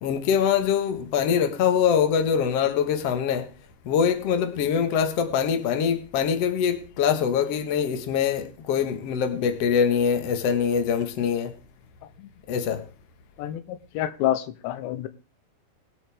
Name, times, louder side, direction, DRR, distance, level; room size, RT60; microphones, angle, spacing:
voice 1, 0.0-3.5 3.9-11.5 12.5-12.8, left 7 dB, 55° left, 1.8 m, -23 dB
voice 2, 13.4-15.1, left 12 dB, 85° left, 3.2 m, -28 dB
23.0 x 8.3 x 3.5 m
omnidirectional pair, 5.0 m